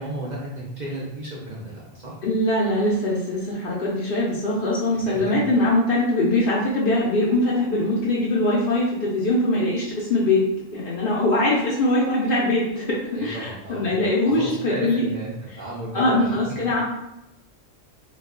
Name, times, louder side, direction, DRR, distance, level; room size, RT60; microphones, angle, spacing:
voice 1, 0.0-2.1 5.1-5.2 13.1-16.4, right 1 dB, 50° right, -5 dB, 0.5 m, -34 dB
voice 2, 2.2-10.4 10.7-15.1 15.9-16.8, left 1 dB, 60° left, -5 dB, 0.6 m, -22 dB
2.3 x 2.2 x 3.6 m, 0.88 s
omnidirectional pair, 1.3 m